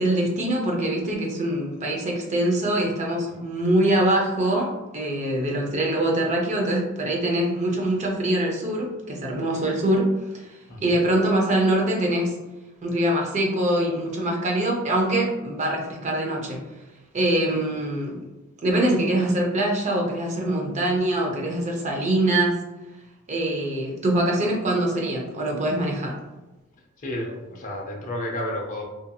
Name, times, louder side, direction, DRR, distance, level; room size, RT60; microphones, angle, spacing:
voice 1, 0.0-10.1 10.8-12.3 12.8-16.6 17.1-18.2 18.6-22.6 23.3-26.2, right 1 dB, 35° right, -1 dB, 0.6 m, -23 dB
voice 2, 27.0-28.9, left 1 dB, 35° left, -1 dB, 0.5 m, -32 dB
2.7 x 2.5 x 2.2 m, 1.0 s
head